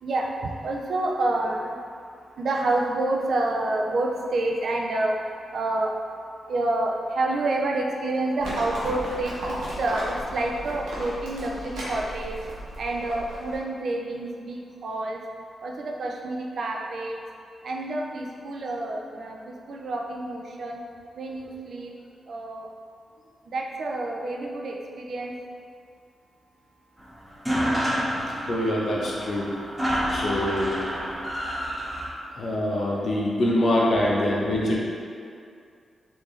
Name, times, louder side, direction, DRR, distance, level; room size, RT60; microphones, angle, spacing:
voice 1, 0.0-1.8 2.4-5.2 5.5-5.9 6.5-12.4 12.8-15.2 15.6-17.2 17.6-20.8 21.1-21.9 22.3-22.7 23.5-25.3 29.9-30.0 32.0-32.5, right 2 dB, 65° right, 0 dB, 0.4 m, -28 dB
Livestock farm animals working animals, 8.4-13.6, equal, 90° right, 0.8 m, -35 dB
sound 1, 27.0-27.1 27.3-32.1, equal, 5° right, 1.1 m, -28 dB
voice 2, 28.5-29.5 30.1-30.8 32.4-34.8, left 1 dB, 65° left, -4 dB, 0.7 m, -24 dB
3.5 x 2.7 x 3.2 m, 2.3 s
supercardioid pair, 50°, 0 cm